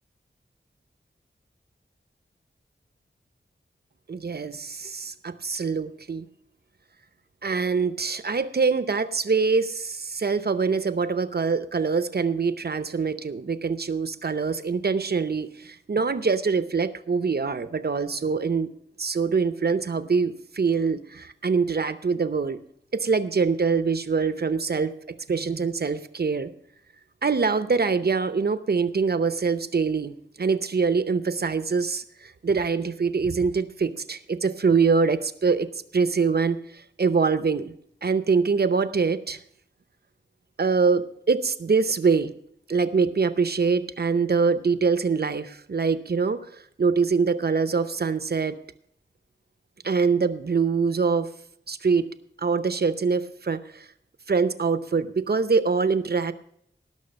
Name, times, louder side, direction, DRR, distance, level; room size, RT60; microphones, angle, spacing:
voice 1, 4.1-6.3 7.4-18.7 19.0-22.6 22.9-24.9 25.3-26.5 27.2-37.7 38.0-39.4 40.6-42.3 42.7-48.6 49.8-51.3 51.7-52.1 52.4-53.9 54.3-56.3, right 5 dB, 55° right, 12 dB, 0.7 m, -24 dB
18.0 x 6.4 x 5.3 m, 0.67 s
wide cardioid pair, 85°, 20 cm